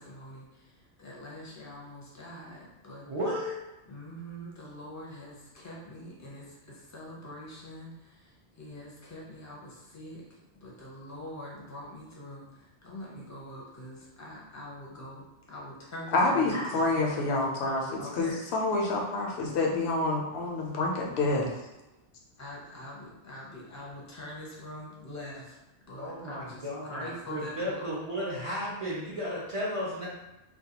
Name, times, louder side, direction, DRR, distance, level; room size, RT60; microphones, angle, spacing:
voice 1, 0.0-3.0 3.9-10.2 10.6-17.3 18.0-18.4 22.4-25.6 25.9-28.1, left 1 dB, 25° left, -4 dB, 0.4 m, -44 dB
voice 2, 3.0-3.6 16.5-16.8 26.0-30.1, equal, 45° right, -7 dB, 0.4 m, -34 dB
voice 3, 16.1-21.5, left 2 dB, 85° left, -1 dB, 0.9 m, -28 dB
2.4 x 2.2 x 2.8 m, 0.97 s
omnidirectional pair, 1.1 m